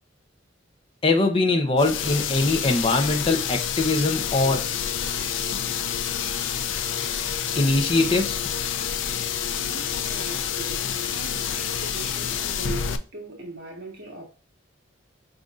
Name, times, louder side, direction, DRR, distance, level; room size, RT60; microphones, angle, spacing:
voice 1, 1.0-4.6 7.6-8.4, left 2 dB, 30° left, 0.7 m, -22 dB
sound 1, 1.8-13.0, left 8 dB, 75° left, 0.5 m, -28 dB
voice 2, 9.6-14.2, right 1 dB, 60° right, 1.8 m, -40 dB
5.2 x 3.8 x 2.5 m
head